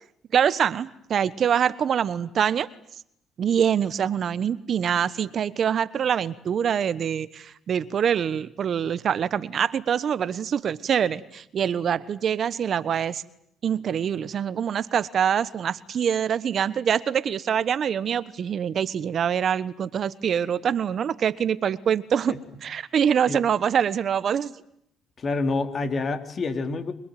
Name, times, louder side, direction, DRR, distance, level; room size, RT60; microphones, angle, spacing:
voice 1, 0.3-2.7 3.4-13.2 13.6-24.5, right 8 dB, 55° right, 16 dB, 1.2 m, -25 dB
voice 2, 25.2-26.9, left 3 dB, 45° left, 7 dB, 3.6 m, -27 dB
25.5 x 22.5 x 9.3 m, 0.71 s
supercardioid pair, 65°, 0 cm